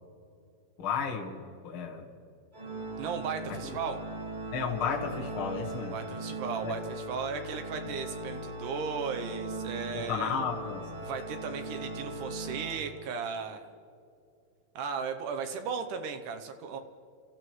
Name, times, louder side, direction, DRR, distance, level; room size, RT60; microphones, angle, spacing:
voice 1, 0.8-2.1 3.5-3.7 4.5-6.0 6.6-6.7 9.9-10.9, left 6 dB, 50° left, 0 dB, 1.8 m, -33 dB
Organ, 2.5-13.4, right 2 dB, 20° right, 1.3 m, -39 dB
voice 2, 3.0-4.0 5.9-10.4 11.0-13.7 14.8-16.8, right 6 dB, 75° right, 7 dB, 2.2 m, -36 dB
28.0 x 15.0 x 3.1 m, 2.5 s
omnidirectional pair, 4.1 m